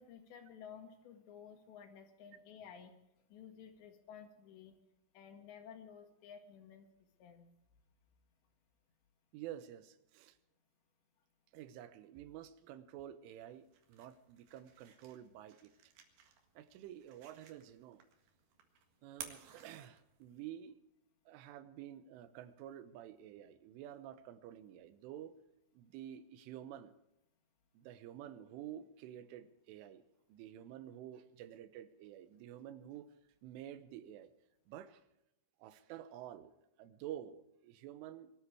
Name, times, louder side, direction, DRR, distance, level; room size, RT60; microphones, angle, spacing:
voice 1, 0.0-2.9 3.3-4.8 5.1-6.9 7.2-7.5, left 7 dB, 70° left, 6 dB, 3.9 m, -54 dB
voice 2, 9.3-10.4 11.5-15.9 16.6-18.0 19.0-20.8 21.3-25.3 25.7-26.9 27.7-30.0 30.3-33.1 33.4-34.3 34.7-35.0 35.6-38.3, right 11 dB, 90° right, 12 dB, 3.6 m, -50 dB
sound 1, 13.5-20.5, right 8 dB, 65° right, 3.5 m, -56 dB
22.0 x 13.5 x 4.8 m, 0.88 s
omnidirectional pair, 5.5 m